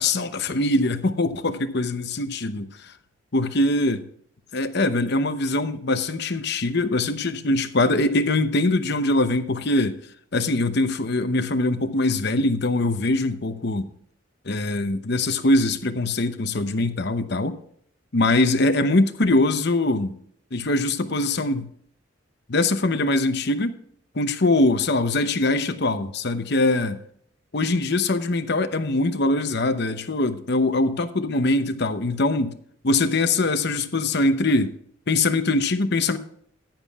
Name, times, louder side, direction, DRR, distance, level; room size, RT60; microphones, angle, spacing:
voice 1, 0.0-2.9 3.3-4.0 4.5-10.0 10.3-13.9 14.4-17.6 18.1-20.2 20.5-21.7 22.5-23.8 24.1-27.0 27.5-32.5 32.8-34.7 35.1-36.2, left 2 dB, 55° left, 0.8 m, -22 dB
14.5 x 10.5 x 2.4 m
head